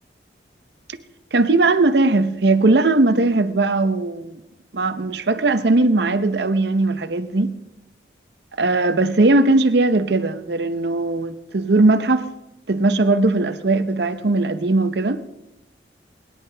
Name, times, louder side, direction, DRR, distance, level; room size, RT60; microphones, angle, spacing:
voice 1, 1.3-4.4 4.7-7.6 8.6-12.3 12.7-15.2, right 2 dB, 75° right, 0.8 m, -19 dB
23.5 x 10.5 x 3.4 m
head